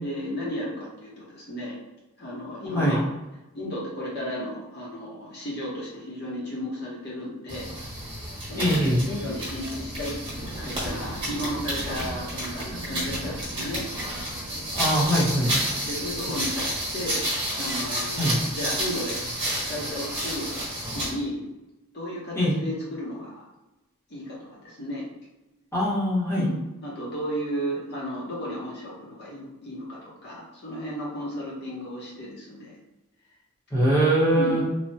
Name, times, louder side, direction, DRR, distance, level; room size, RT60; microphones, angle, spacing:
voice 1, 0.0-1.8 2.2-3.0 3.5-7.7 8.5-13.9 15.8-17.2 17.5-19.2 19.7-20.6 20.9-21.4 21.9-23.4 24.1-25.1 26.4-32.8 34.3-34.7, equal, 50° left, -5 dB, 0.8 m, -34 dB
sound 1, 7.5-21.2, right 1 dB, 25° right, 1.0 m, -31 dB
voice 2, 8.5-9.0 14.7-15.5 18.2-18.4 22.3-22.6 25.7-26.4 33.7-34.6, equal, 10° left, -8 dB, 0.8 m, -22 dB
sound 2, 10.3-16.7, right 2 dB, 80° right, 0.4 m, -41 dB
3.1 x 2.1 x 2.7 m, 1.0 s
head